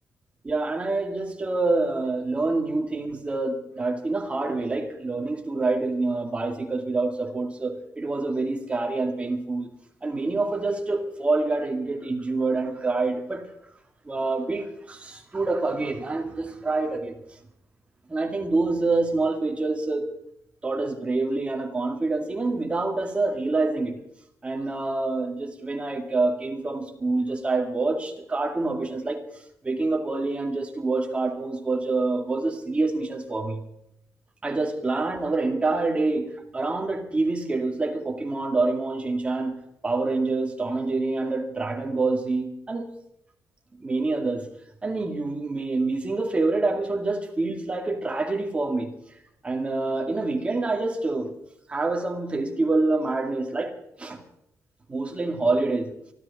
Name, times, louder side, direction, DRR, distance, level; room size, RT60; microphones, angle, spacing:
voice 1, 0.4-9.7 10.0-13.5 14.1-17.2 18.1-20.0 20.6-24.0 24.4-29.3 29.6-33.7 34.4-36.3 36.5-39.6 39.8-42.9 43.8-44.5 44.8-48.9 49.4-51.3 51.7-54.2 54.9-55.9, right 3 dB, 20° right, 3 dB, 2.4 m, -26 dB
24.0 x 14.0 x 4.2 m, 0.77 s
wide cardioid pair, 145°, 6 cm